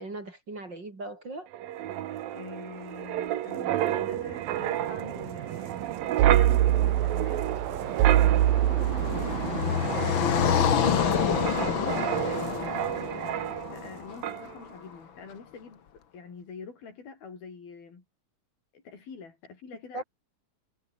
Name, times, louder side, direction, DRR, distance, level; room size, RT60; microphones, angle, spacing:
voice 1, 0.0-1.5 19.9-20.0, right 2 dB, 30° right, 4.1 m, -38 dB
Wind, 1.5-13.9 14.2-14.5, right 12 dB, 75° right, 3.1 m, -27 dB
voice 2, 2.3-5.9 6.2-7.6 8.1-9.4 10.1-13.0 13.7-18.0 18.7-20.0, left 5 dB, 80° left, 7.2 m, -45 dB
Car passing by, 7.4-14.7, left 8 dB, 55° left, 1.4 m, -28 dB
omnidirectional pair, 4.2 m